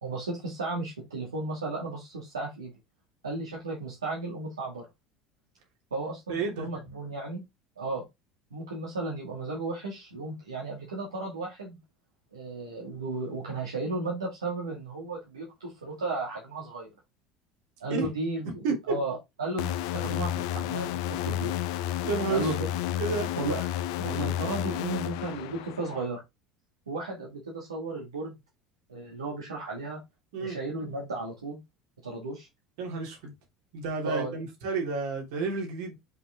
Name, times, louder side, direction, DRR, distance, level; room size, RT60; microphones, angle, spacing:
voice 1, 0.0-2.7 3.2-4.9 5.9-7.4 7.8-8.1 8.5-11.8 12.3-16.9 17.8-18.5 18.9-21.5 22.3-22.7 23.4-23.7 24.0-26.2 26.9-28.3 28.9-30.0 30.4-31.6 32.0-32.5 34.0-34.4, right 2 dB, 75° right, 2.2 m, -34 dB
voice 2, 6.3-6.7 17.9-18.1 18.4-18.8 22.0-22.5 23.0-23.3 30.3-30.6 32.8-33.3 33.7-36.0, right 4 dB, 60° right, 3.1 m, -31 dB
sound 1, 19.6-26.1, left 12 dB, 60° left, 0.6 m, -31 dB
6.7 x 5.4 x 3.7 m
figure-of-eight pair, 70°, 3 cm